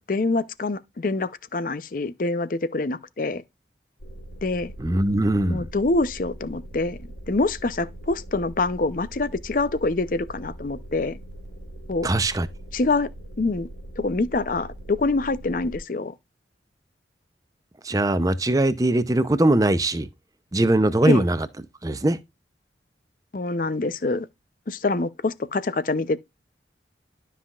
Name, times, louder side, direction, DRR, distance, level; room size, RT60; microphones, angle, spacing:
voice 1, 0.0-3.4 4.4-4.7 5.4-7.0 7.3-11.2 11.9-12.1 12.7-13.1 13.4-13.7 14.0-16.1 21.0-21.2 23.3-24.3 24.7-26.2, left 3 dB, 50° left, 0.6 m, -25 dB
sound 1, 4.0-15.8, right 1 dB, 70° left, 1.1 m, -41 dB
voice 2, 4.8-5.7 12.0-12.5 17.8-20.1 20.5-21.5 21.8-22.2, right 1 dB, 20° right, 0.6 m, -21 dB
12.0 x 5.6 x 2.4 m
head